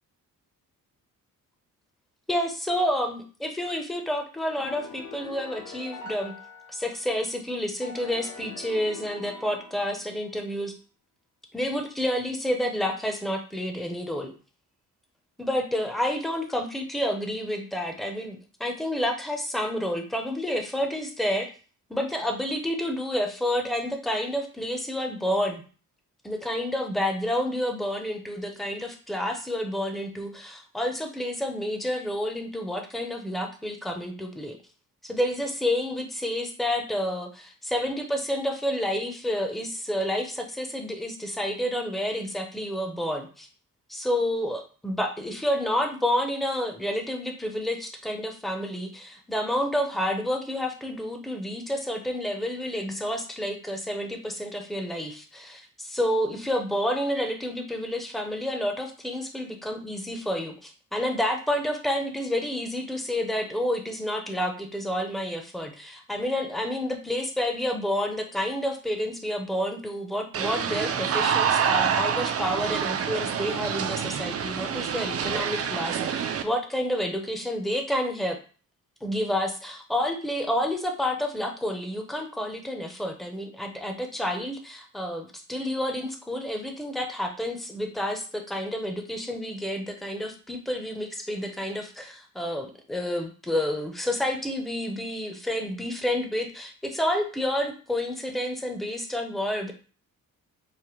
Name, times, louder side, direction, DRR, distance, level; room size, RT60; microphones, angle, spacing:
voice 1, 2.3-6.3 6.7-10.7 11.5-14.3 15.4-21.5 21.9-25.6 26.2-34.6 35.0-43.5 43.9-78.4 79.0-99.7, left 1 dB, ahead, 4 dB, 0.6 m, -29 dB
sound 1, 4.6-7.2 7.8-10.3, left 4 dB, 55° left, 0.8 m, -43 dB
sound 2, 70.3-76.4, right 7 dB, 45° right, 0.4 m, -27 dB
4.8 x 2.1 x 3.0 m, 0.38 s
cardioid pair, 105°, 34 cm